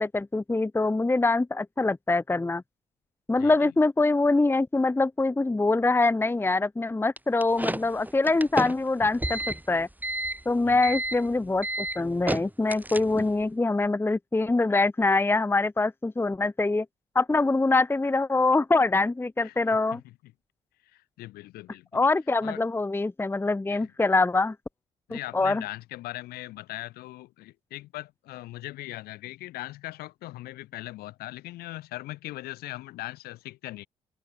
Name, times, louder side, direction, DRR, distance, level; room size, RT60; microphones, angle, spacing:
voice 1, 0.0-2.6 3.3-9.9 10.5-16.9 17.1-20.0 21.9-24.6 25.1-25.6, left 3 dB, 15° left, 0.7 m, -24 dB
voice 2, 3.3-3.7 10.6-10.8 19.4-19.8 20.0-20.3 20.8-22.0 22.4-22.6 23.7-23.9 25.1-33.9, left 17 dB, 75° left, 5.5 m, -40 dB
sound 1, 7.2-13.4, right 1 dB, 10° right, 5.1 m, -31 dB
hypercardioid pair, 45°, 16 cm